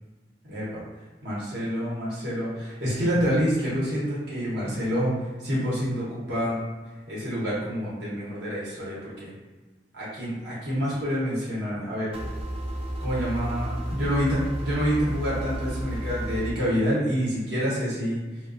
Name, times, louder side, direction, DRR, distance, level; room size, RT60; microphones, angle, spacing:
voice 1, 0.5-0.8 1.2-6.6 7.1-9.3 9.9-12.2 13.0-18.2, equal, 75° right, -8 dB, 0.9 m, -27 dB
sound 1, 12.1-16.5, right 1 dB, 30° right, 0.3 m, -32 dB
2.3 x 2.2 x 2.4 m, 1.3 s
head